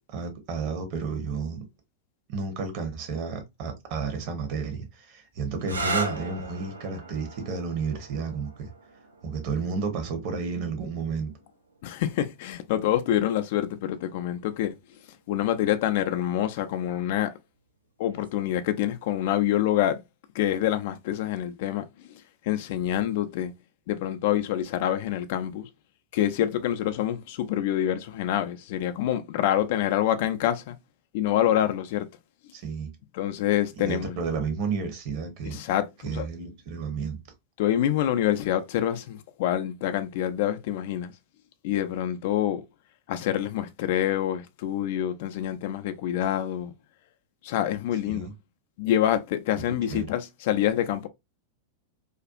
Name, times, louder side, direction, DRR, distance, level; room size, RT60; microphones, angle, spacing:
voice 1, 0.1-1.6 2.3-8.7 9.2-11.3 32.5-32.9 33.8-35.6 36.0-37.2 48.1-48.3 49.9-50.1, right 5 dB, 45° right, 0.8 m, -31 dB
sound 1, 5.6-13.0 14.0-14.6 18.1-18.4, right 3 dB, 75° right, 0.5 m, -37 dB
voice 2, 11.8-14.8 15.3-17.4 18.0-20.0 20.3-22.1 22.4-23.5 23.9-25.7 26.1-30.8 31.1-32.1 33.1-34.2 35.5-36.3 37.6-41.1 41.6-42.6 43.1-46.7 47.4-48.3 48.8-51.1, left 11 dB, 50° left, 0.3 m, -26 dB
2.5 x 2.3 x 2.3 m
figure-of-eight pair, 90°, 0 cm